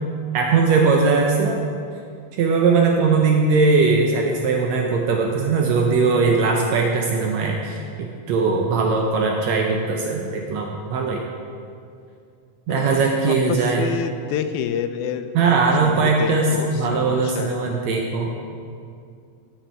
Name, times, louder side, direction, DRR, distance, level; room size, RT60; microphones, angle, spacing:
voice 1, 0.3-1.6 2.4-11.2 12.7-13.9 15.4-18.3, right 4 dB, 75° right, 1 dB, 1.9 m, -20 dB
voice 2, 12.7-17.6, left 8 dB, 90° left, 9 dB, 2.0 m, -29 dB
14.0 x 7.0 x 4.4 m, 2.4 s
omnidirectional pair, 3.4 m